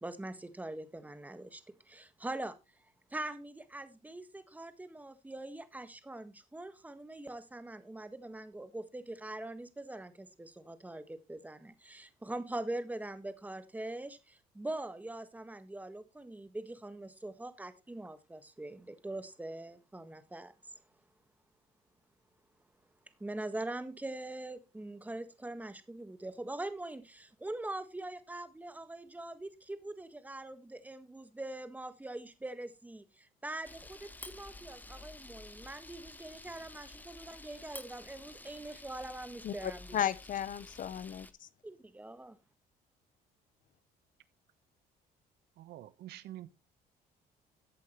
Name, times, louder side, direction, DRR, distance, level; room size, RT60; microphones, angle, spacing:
voice 1, 0.0-2.6 3.1-20.5 23.2-40.0 41.6-42.4, right 2 dB, 10° right, 1.5 m, -43 dB
Camera, 33.6-41.3, left 2 dB, 10° left, 1.0 m, -51 dB
voice 2, 39.4-41.5, left 10 dB, 55° left, 0.9 m, -35 dB
voice 3, 45.6-46.5, right 13 dB, 75° right, 1.1 m, -47 dB
14.5 x 8.4 x 3.1 m
cardioid pair, 110°, 17 cm